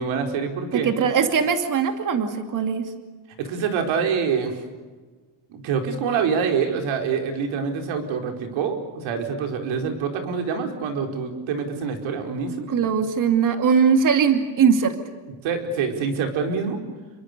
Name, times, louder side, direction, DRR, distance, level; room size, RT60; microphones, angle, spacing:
voice 1, 0.0-0.9 3.4-4.6 5.5-12.7 15.4-16.8, right 6 dB, 80° right, 4 dB, 4.7 m, -26 dB
voice 2, 0.7-2.9 12.7-15.0, right 6 dB, 40° right, 7 dB, 2.6 m, -20 dB
29.0 x 23.5 x 6.8 m, 1.4 s
cardioid pair, 145°, 47 cm